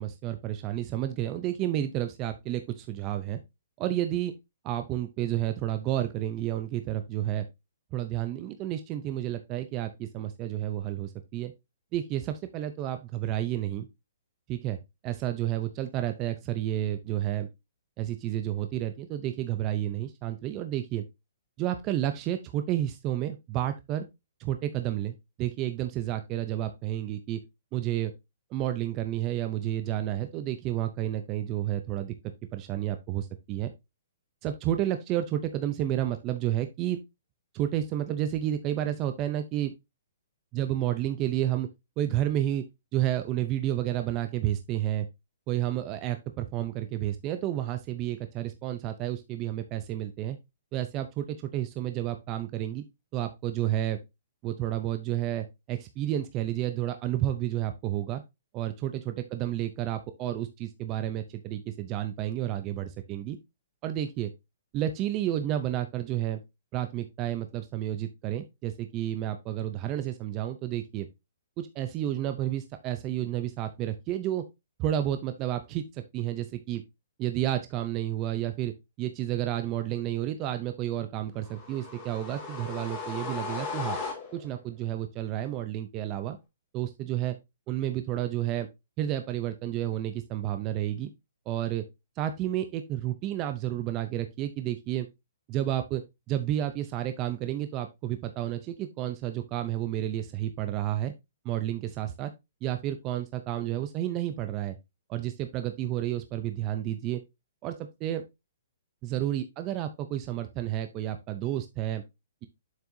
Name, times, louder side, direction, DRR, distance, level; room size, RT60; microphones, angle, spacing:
voice 1, 0.0-3.4 3.8-4.3 4.6-7.5 7.9-11.5 11.9-13.9 14.5-14.8 15.0-17.5 18.0-21.0 21.6-24.1 24.4-27.4 27.7-28.1 28.5-32.1 32.5-33.7 34.4-37.0 37.5-39.7 40.5-41.7 42.0-42.6 42.9-45.1 45.5-50.4 50.7-52.8 53.1-54.0 54.4-58.2 58.5-63.4 63.8-64.3 64.7-66.4 66.7-71.1 71.6-74.4 74.8-76.8 77.2-84.0 84.3-86.4 86.7-87.4 87.7-88.7 89.0-91.1 91.5-91.8 92.2-95.1 95.5-96.0 96.3-101.1 101.4-102.3 102.6-104.8 105.1-107.2 107.6-108.2 109.0-112.0, right 12 dB, 20° right, 8 dB, 0.5 m, -31 dB
sound 1, 81.4-84.6, left 4 dB, 15° left, 2.0 m, -37 dB
7.4 x 5.8 x 2.6 m, 0.22 s
hypercardioid pair, 170°, 0 cm